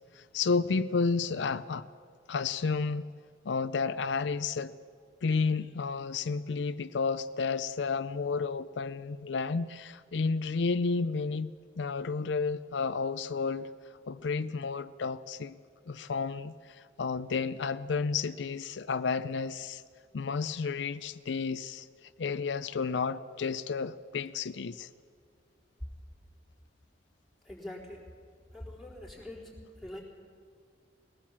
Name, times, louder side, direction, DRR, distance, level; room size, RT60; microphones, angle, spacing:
voice 1, 0.1-1.9 2.3-3.1 3.4-4.7 5.2-13.7 14.1-15.6 15.9-19.8 20.1-21.9 22.2-24.9, left 4 dB, 75° left, 0.5 m, -31 dB
voice 2, 27.5-28.0 28.5-29.5 29.8-30.0, left 1 dB, ahead, 4.2 m, -43 dB
21.0 x 17.5 x 7.3 m
head